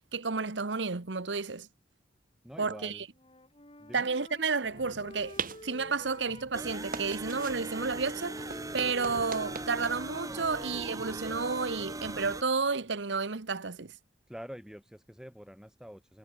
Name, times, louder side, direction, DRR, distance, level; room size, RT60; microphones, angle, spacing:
voice 1, 0.1-1.7 2.6-3.0 3.9-8.4 8.7-13.9, right 4 dB, 90° right, 1.2 m, -31 dB
voice 2, 2.4-3.0 3.8-4.1 14.3-16.2, equal, 5° right, 6.3 m, -46 dB
Wind instrument woodwind instrument, 3.1-6.9 7.3-11.8, left 1 dB, 30° left, 6.9 m, -51 dB
sound 1, 4.6-12.2, right 5 dB, 50° right, 2.8 m, -44 dB
sound 2, 6.5-12.4, right 2 dB, 20° right, 1.5 m, -39 dB
head